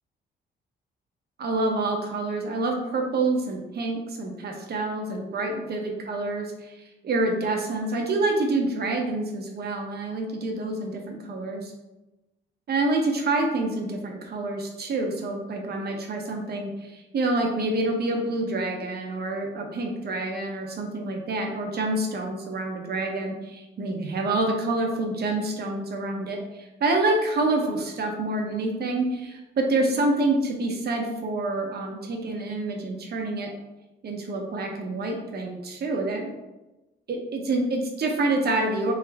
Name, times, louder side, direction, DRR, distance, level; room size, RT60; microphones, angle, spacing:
voice 1, 1.4-6.7 7.0-11.7 12.7-33.5 34.0-36.3 37.1-38.9, right 2 dB, 55° right, 1 dB, 1.0 m, -27 dB
3.6 x 3.5 x 3.4 m, 1.0 s
cardioid pair, 90°, 20 cm